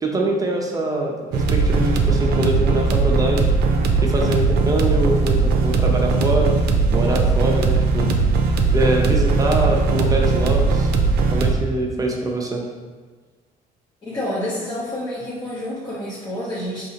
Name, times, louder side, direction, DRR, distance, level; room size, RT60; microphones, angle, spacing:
voice 1, 0.0-3.5 4.0-6.6 6.9-8.1 8.7-10.9 11.3-12.6, right 1 dB, 20° right, 1 dB, 0.6 m, -23 dB
sound 1, 1.3-11.5, right 4 dB, 75° right, 0.5 m, -19 dB
voice 2, 14.0-16.9, left 1 dB, 25° left, -9 dB, 0.9 m, -28 dB
4.6 x 2.8 x 2.8 m, 1.4 s
cardioid pair, 110°, 17 cm